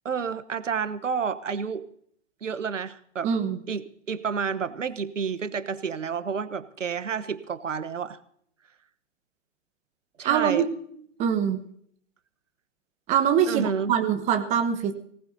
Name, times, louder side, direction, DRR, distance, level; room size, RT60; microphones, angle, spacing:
voice 1, 0.0-1.9 2.4-3.3 3.7-8.2 10.2-10.6 13.5-13.9, right 6 dB, 80° right, 13 dB, 1.2 m, -30 dB
voice 2, 3.2-3.6 10.2-10.7 11.2-11.6 13.1-14.9, right 8 dB, 20° right, 6 dB, 1.2 m, -23 dB
24.0 x 18.5 x 2.8 m, 0.66 s
hypercardioid pair, 130°, 37 cm